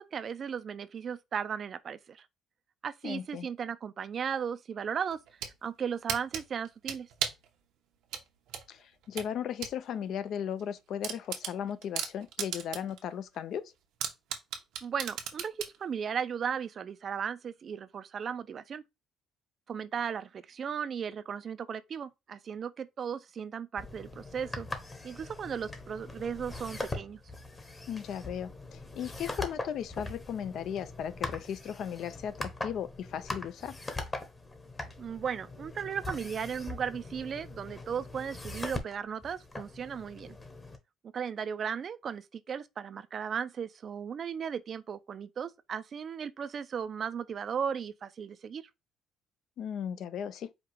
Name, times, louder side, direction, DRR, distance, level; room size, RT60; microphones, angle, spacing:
voice 1, 0.0-2.3 2.8-5.2 5.6-7.1 14.8-18.8 19.7-24.7 25.0-27.2 35.0-40.4 41.1-48.7, right 7 dB, 45° right, 0.4 m, -36 dB
voice 2, 3.0-3.5 8.7-13.7 27.9-33.8 49.6-50.5, left 9 dB, 65° left, 0.4 m, -36 dB
sound 1, 5.1-5.6 6.1-7.5 8.1-9.8 10.1-10.2 10.6-10.7 11.0-13.0 13.3-13.4 14.0-15.8, right 8 dB, 85° right, 0.9 m, -35 dB
sound 2, 23.8-40.8, left 2 dB, 20° left, 0.9 m, -41 dB
5.0 x 2.3 x 4.5 m
cardioid pair, 125°, 0 cm